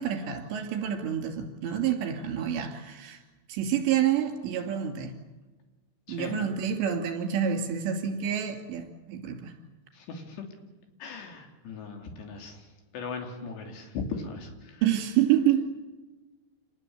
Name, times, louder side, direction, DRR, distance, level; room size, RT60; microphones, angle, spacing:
voice 1, 0.0-3.2 3.5-5.1 6.1-9.5 14.8-15.7, right 9 dB, 65° right, 5 dB, 4.7 m, -28 dB
voice 2, 6.1-6.5 9.9-10.4 11.0-12.7 12.9-14.8, left 4 dB, 65° left, 4 dB, 5.0 m, -38 dB
27.0 x 19.5 x 8.4 m, 1.2 s
omnidirectional pair, 5.6 m